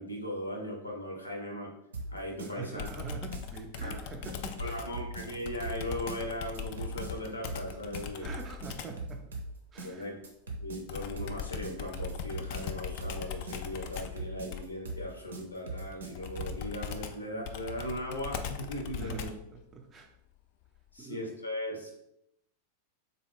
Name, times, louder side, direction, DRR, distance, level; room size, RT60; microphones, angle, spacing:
voice 1, 0.0-1.7 2.1-2.9 3.8-4.0 4.6-8.3 9.8-10.2 10.6-19.4 20.9-22.0, equal, 80° left, 0 dB, 0.8 m, -38 dB
sound 1, 1.9-16.6, right 2 dB, 70° right, 0.6 m, -41 dB
voice 2, 2.4-4.8 8.2-9.2 9.7-10.1 19.0-19.3 19.7-20.1 21.0-21.2, right 4 dB, 25° right, 3 dB, 0.6 m, -43 dB
Computer keyboard, 2.8-9.0 10.9-19.5, left 9 dB, 45° left, 0.3 m, -40 dB
3.7 x 2.3 x 3.5 m, 0.80 s
figure-of-eight pair, 90°, 0 cm